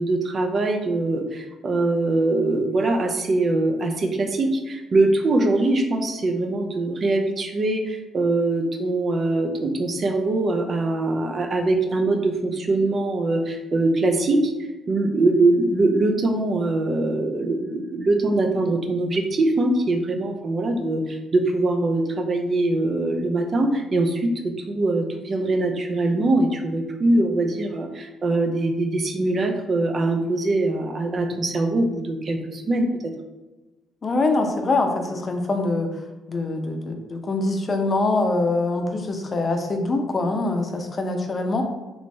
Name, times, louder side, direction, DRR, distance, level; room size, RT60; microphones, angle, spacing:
voice 1, 0.0-14.5 14.9-24.3 24.7-33.1, right 2 dB, 45° right, 3 dB, 0.5 m, -22 dB
voice 2, 34.0-35.9 36.3-41.6, left 2 dB, 35° left, 4 dB, 0.6 m, -24 dB
3.3 x 3.1 x 2.6 m, 1.1 s
cardioid pair, 90°, 0 cm